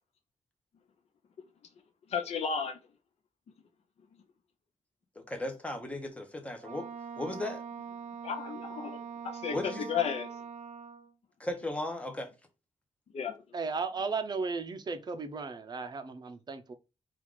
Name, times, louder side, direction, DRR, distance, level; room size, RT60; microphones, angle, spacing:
voice 1, 2.1-2.8 8.2-9.0 9.2-10.3 13.1-13.4, left 6 dB, 60° left, 0.6 m, -33 dB
voice 2, 5.2-6.9 7.2-7.6 9.5-9.9 11.4-12.3, left 1 dB, 10° left, 0.8 m, -36 dB
Wind instrument woodwind instrument, 6.6-11.1, right 6 dB, 85° right, 0.4 m, -43 dB
voice 3, 13.5-16.7, right 4 dB, 35° right, 0.5 m, -35 dB
4.6 x 2.5 x 3.6 m
wide cardioid pair, 175°, 12 cm